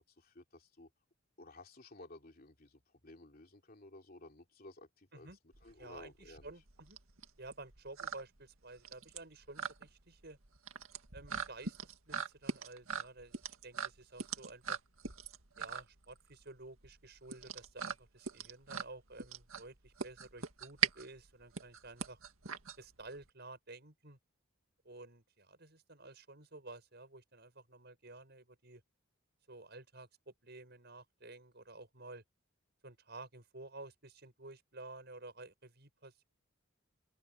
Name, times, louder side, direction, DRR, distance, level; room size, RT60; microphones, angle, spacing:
voice 1, 0.1-0.9 1.4-5.3 5.6-6.5, left 2 dB, 45° left, 3.1 m, -55 dB
sound 1, 5.5-23.3, right 6 dB, 90° right, 2.1 m, -41 dB
voice 2, 5.8-7.0 7.4-10.4 11.1-14.8 15.6-22.2 22.8-24.2 24.8-28.8 29.5-32.2 32.8-36.2, right 2 dB, 50° right, 6.8 m, -52 dB
head